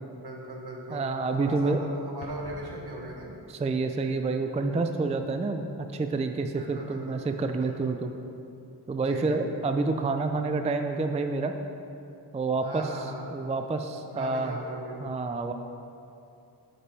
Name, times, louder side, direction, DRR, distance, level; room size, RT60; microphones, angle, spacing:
voice 1, 0.1-1.1 1.4-3.3 6.6-7.3 7.6-8.0 9.0-9.4 12.6-13.3 14.1-15.0, right 2 dB, 65° right, -1 dB, 1.3 m, -39 dB
voice 2, 0.9-1.8 3.5-8.1 8.9-11.5 12.3-12.9 13.3-14.6 15.0-15.5, right 3 dB, 20° right, 6 dB, 0.3 m, -28 dB
Explosion, 2.2-3.9, left 4 dB, 85° left, 0.7 m, -47 dB
8.3 x 5.3 x 4.5 m, 2.7 s
wide cardioid pair, 75°, 41 cm